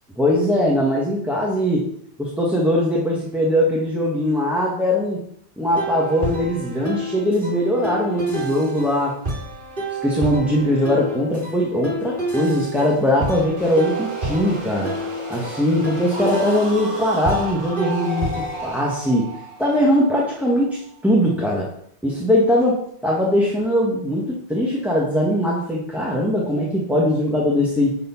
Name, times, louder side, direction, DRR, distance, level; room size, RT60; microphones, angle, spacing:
voice 1, 0.2-1.9 2.2-5.2 5.6-9.2 10.0-14.9 15.3-19.3 19.6-21.7 22.0-28.0, left 1 dB, ahead, -4 dB, 1.3 m, -20 dB
sound 1, 5.7-18.7, right 2 dB, 45° right, 2.3 m, -29 dB
sound 2, 13.3-21.0, equal, 25° right, 2.5 m, -34 dB
10.0 x 4.5 x 5.6 m, 0.69 s
omnidirectional pair, 1.2 m